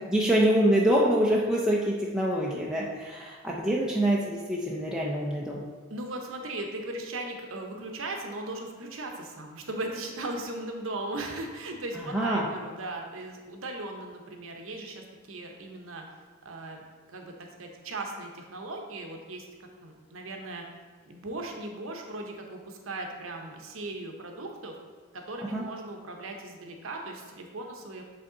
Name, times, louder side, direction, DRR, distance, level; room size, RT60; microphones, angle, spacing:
voice 1, 0.1-5.6 12.1-12.5 25.5-25.6, right 1 dB, 5° right, -5 dB, 0.5 m, -25 dB
voice 2, 5.9-16.0 16.4-19.5 19.8-20.6 21.0-24.8 25.1-28.0, right 2 dB, 75° right, 2 dB, 0.9 m, -38 dB
8.0 x 3.5 x 3.8 m, 1.4 s
head